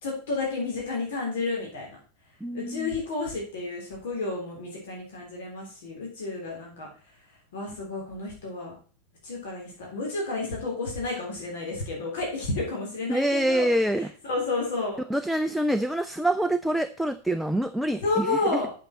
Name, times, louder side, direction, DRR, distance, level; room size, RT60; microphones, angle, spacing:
voice 1, 0.0-2.0 2.5-6.9 7.5-8.7 9.2-13.7 14.0-15.0 18.0-18.7, left 3 dB, 55° left, -1 dB, 3.4 m, -31 dB
voice 2, 2.4-2.9 13.1-14.1 15.1-18.6, right 1 dB, ahead, 9 dB, 0.4 m, -26 dB
8.0 x 7.7 x 4.0 m, 0.41 s
figure-of-eight pair, 90°, 0 cm